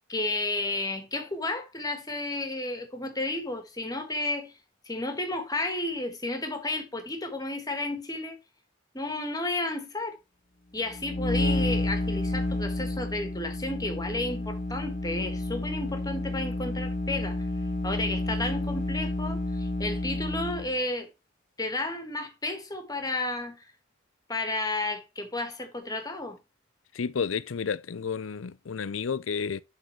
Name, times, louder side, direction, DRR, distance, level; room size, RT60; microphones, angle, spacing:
voice 1, 0.1-4.5 4.8-8.4 8.9-10.2 10.7-17.4 17.8-21.1 21.6-23.6 24.3-26.4, left 2 dB, 20° left, 1.6 m, -32 dB
sound 1, 10.9-20.8, left 2 dB, 45° left, 1.3 m, -30 dB
voice 2, 27.0-29.6, left 6 dB, 90° left, 0.5 m, -31 dB
11.5 x 4.0 x 3.1 m
head